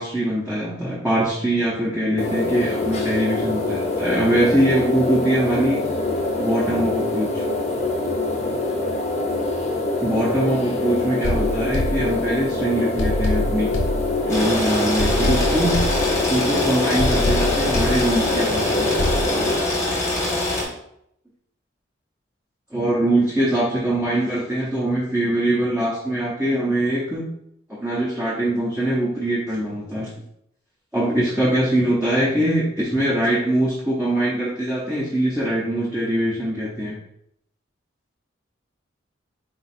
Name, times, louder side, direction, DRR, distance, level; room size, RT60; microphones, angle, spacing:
voice 1, 0.0-5.8 6.4-7.4 10.0-13.7 14.3-15.8 16.3-18.9 22.7-27.3 27.8-30.1 30.9-36.9, right 1 dB, 10° right, -7 dB, 0.6 m, -22 dB
sound 1, 2.2-19.5, left 2 dB, 35° left, 0.6 m, -25 dB
sound 2, 11.2-12.5 13.0-14.5 15.0-16.5 17.0-18.5 19.0-19.3, left 1 dB, 75° left, 0.6 m, -26 dB
sound 3, 14.3-20.6, left 2 dB, 15° left, 0.9 m, -24 dB
4.0 x 2.3 x 4.2 m, 0.74 s
head